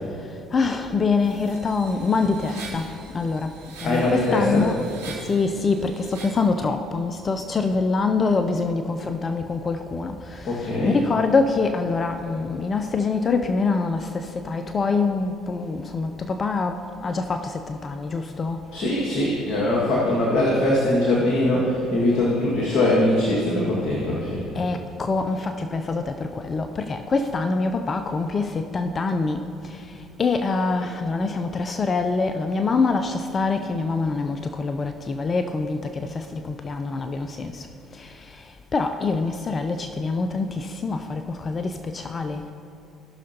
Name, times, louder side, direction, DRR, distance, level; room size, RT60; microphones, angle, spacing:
voice 1, 0.3-18.6 24.5-37.7 37.9-42.4, left 4 dB, 35° left, 8 dB, 0.5 m, -25 dB
sound 1, 1.2-6.5, right 3 dB, 90° right, 2.1 m, -42 dB
voice 2, 3.8-4.7 10.5-11.0 18.7-24.5, left 1 dB, 60° left, -5 dB, 1.9 m, -22 dB
18.0 x 6.2 x 2.9 m, 2.6 s
hypercardioid pair, 65°, 0 cm